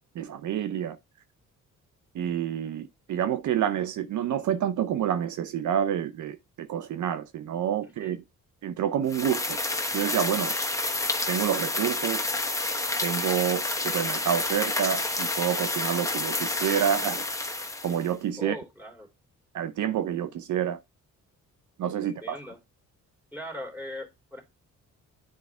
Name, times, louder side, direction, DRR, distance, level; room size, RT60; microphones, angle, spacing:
voice 1, 0.2-1.0 2.1-8.2 8.6-9.6 9.9-10.5 11.3-12.4 13.0-17.2 17.8-18.6 19.5-20.8 21.8-22.4, right 9 dB, 65° right, 0.7 m, -28 dB
voice 2, 7.8-8.2 18.4-19.1 22.0-22.6 23.3-24.4, left 1 dB, 5° right, 3.3 m, -40 dB
sound 1, 9.1-18.1, left 2 dB, 10° left, 1.1 m, -29 dB
9.7 x 4.6 x 3.5 m
cardioid pair, 90°, 31 cm